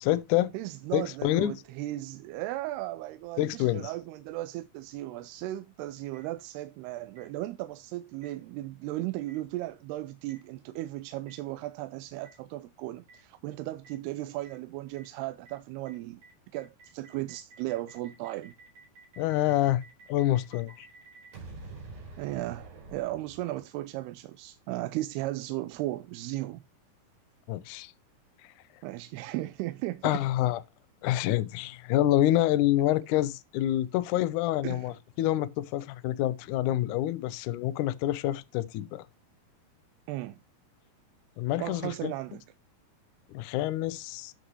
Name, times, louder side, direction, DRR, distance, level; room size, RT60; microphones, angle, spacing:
voice 1, 0.0-0.5 0.9-1.5 3.4-3.9 19.2-19.8 20.1-20.9 27.5-27.9 30.0-30.6 31.0-39.0 41.4-42.1 43.3-44.3, left 14 dB, 90° left, 1.7 m, -27 dB
voice 2, 0.5-16.2 16.5-18.5 22.2-26.6 28.8-30.2 34.6-34.9 40.1-40.4 41.6-42.4, right 16 dB, 85° right, 2.6 m, -36 dB
Boom, 6.1-6.2 7.2-7.3 8.2-8.3 9.3-9.4 10.3-10.4 11.3-11.4 12.2-12.3 13.1-13.2 13.8-13.9 14.4-14.5 15.0-15.1 15.5-15.6 15.9-16.0 16.2-23.8, right 3 dB, 65° right, 6.0 m, -49 dB
13.5 x 6.3 x 3.0 m
omnidirectional pair, 4.6 m